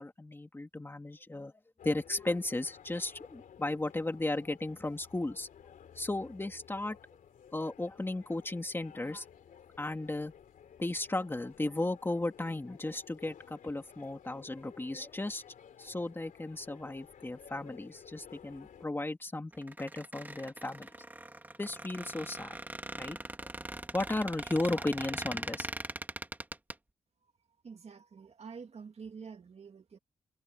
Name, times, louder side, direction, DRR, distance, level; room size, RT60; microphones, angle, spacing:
voice 1, 0.0-1.5 1.8-5.5 5.9-7.0 7.5-9.2 9.8-10.3 10.8-15.4 15.8-20.9 21.6-22.6 23.0-23.5 23.9-25.7, left 2 dB, 15° left, 2.6 m, -35 dB
sound 1, 1.8-18.9, left 8 dB, 85° left, 2.9 m, -55 dB
Squeak, 19.5-26.7, right 2 dB, 15° right, 1.9 m, -41 dB
voice 2, 27.6-30.0, right 5 dB, 50° right, 2.5 m, -47 dB
wide cardioid pair, 120°, 14 cm